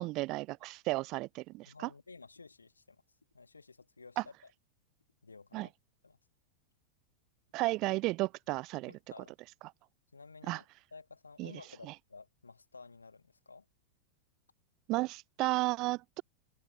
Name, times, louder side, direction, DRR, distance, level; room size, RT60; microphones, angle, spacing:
voice 1, 0.0-1.9 4.2-4.3 5.5-5.7 7.5-8.9 10.5-10.6 11.4-11.5 11.8-11.9 14.9-16.2, right 21 dB, 40° right, 0.3 m, -33 dB
voice 2, 1.7-3.0 3.3-4.5 5.2-5.7 6.0-6.2 8.9-9.3 10.1-10.7 10.9-13.7, left 4 dB, 80° left, 2.0 m, -53 dB
open air
figure-of-eight pair, 90°, 0 cm